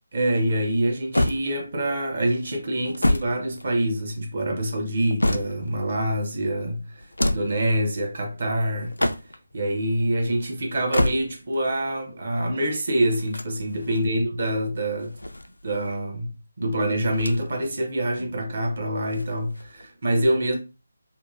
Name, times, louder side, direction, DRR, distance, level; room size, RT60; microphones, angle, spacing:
voice 1, 0.1-8.9 9.5-15.2 15.6-20.5, right 1 dB, 45° right, 0.7 m, -26 dB
sound 1, 1.1-1.9 2.7-4.1 4.8-5.8 7.0-7.6 8.8-9.5 10.7-11.6 13.1-14.1 15.0-15.9 17.1-17.7 18.0-18.1 19.1-19.9, left 1 dB, 75° left, 0.3 m, -28 dB
2.8 x 2.3 x 2.4 m
figure-of-eight pair, 150°, 0 cm